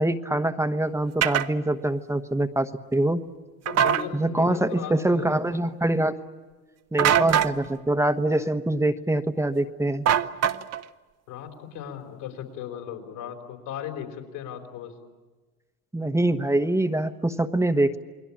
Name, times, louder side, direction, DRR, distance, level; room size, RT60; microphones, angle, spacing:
voice 1, 0.0-3.2 4.1-6.1 6.9-10.1 15.9-18.0, right 1 dB, 5° right, 9 dB, 1.2 m, -24 dB
sound 1, 1.2-1.5 3.7-4.0 7.0-7.5 10.1-10.8, right 9 dB, 35° right, 1.0 m, -22 dB
voice 2, 3.7-5.3 11.3-14.9, left 9 dB, 65° left, 3 dB, 5.0 m, -37 dB
29.0 x 21.5 x 8.7 m, 1.3 s
hypercardioid pair, 85°, 43 cm